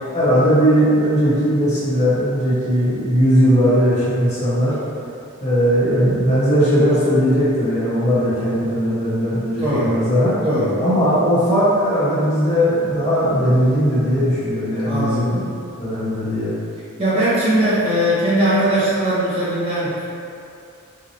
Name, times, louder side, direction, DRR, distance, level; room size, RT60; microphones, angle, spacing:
voice 1, 0.1-4.8 5.4-10.3 10.8-15.5 15.8-16.5, equal, 30° left, -11 dB, 1.4 m, -18 dB
voice 2, 10.4-10.7 14.8-15.3 17.0-20.1, right 1 dB, 25° right, -10 dB, 0.7 m, -19 dB
4.9 x 2.2 x 2.9 m, 2.6 s
head